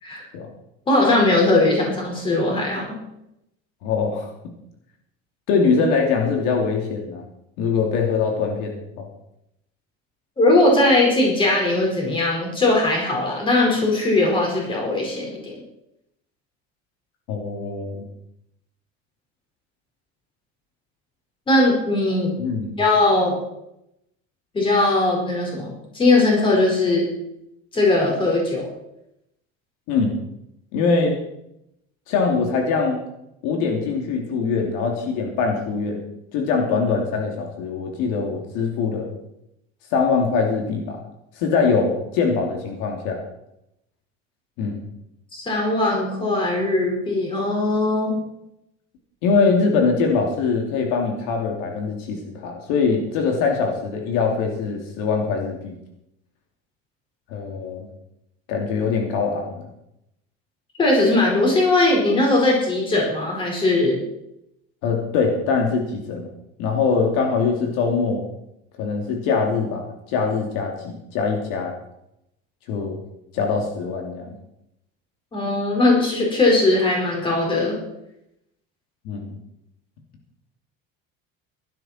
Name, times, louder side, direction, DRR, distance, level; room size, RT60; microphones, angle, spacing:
voice 1, 0.9-2.9 10.4-15.6 21.5-22.3 22.8-23.4 24.5-27.0 27.7-28.7 45.3-48.2 60.8-64.0 75.3-77.8, left 2 dB, 15° left, -1 dB, 4.9 m, -19 dB
voice 2, 3.8-4.3 5.5-7.2 7.6-9.1 17.3-18.0 22.4-22.8 29.9-30.2 30.7-31.2 32.1-33.0 33.4-36.0 36.3-39.1 39.9-41.0 41.4-43.2 44.6-44.9 49.2-55.7 57.3-57.9 58.5-59.7 64.8-66.3 66.6-68.3 68.8-71.8 72.7-73.0 73.3-74.4 79.0-79.4, left 5 dB, 70° left, 2 dB, 3.0 m, -23 dB
16.5 x 12.0 x 4.5 m, 0.82 s
cardioid pair, 175°, 30 cm